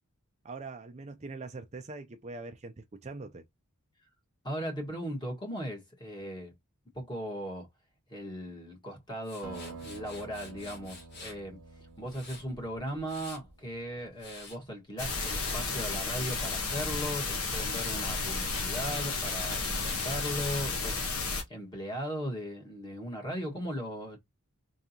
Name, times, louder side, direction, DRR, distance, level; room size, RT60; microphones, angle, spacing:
voice 1, 0.4-3.4, right 3 dB, 30° right, 0.5 m, -42 dB
voice 2, 4.4-6.5 6.9-7.7 8.1-11.6 12.0-21.1 21.5-24.2, equal, 20° left, 1.7 m, -38 dB
Tools, 9.2-11.4 11.9-13.5 14.0-14.6 15.1-15.6 16.0-20.6, left 3 dB, 50° left, 1.4 m, -47 dB
Acoustic guitar, 9.4-14.3, right 4 dB, 85° right, 1.0 m, -49 dB
sound 1, 15.0-21.4, left 4 dB, 70° left, 1.2 m, -32 dB
3.9 x 3.6 x 2.8 m
head